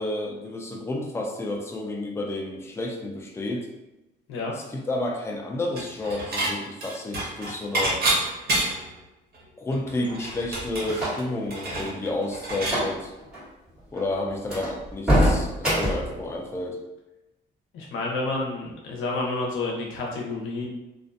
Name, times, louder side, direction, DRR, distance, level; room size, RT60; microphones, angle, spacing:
voice 1, 0.0-3.7 4.5-8.0 9.6-13.1 13.9-16.8, left 2 dB, 15° left, 0 dB, 0.4 m, -31 dB
Dishes pots and pans / Chink clink, 5.8-6.5 6.8-8.9 9.3-9.4 9.7-12.8, right 1 dB, 50° right, 0.9 m, -28 dB
sound 1, 10.0-11.4 12.6-13.0 13.2-13.4 13.9-14.0 14.5-16.2, equal, 5° right, 1.5 m, -24 dB
voice 2, 17.7-20.7, left 2 dB, 90° left, -1 dB, 0.7 m, -29 dB
2.4 x 2.2 x 2.5 m, 0.98 s
cardioid pair, 90°, 20 cm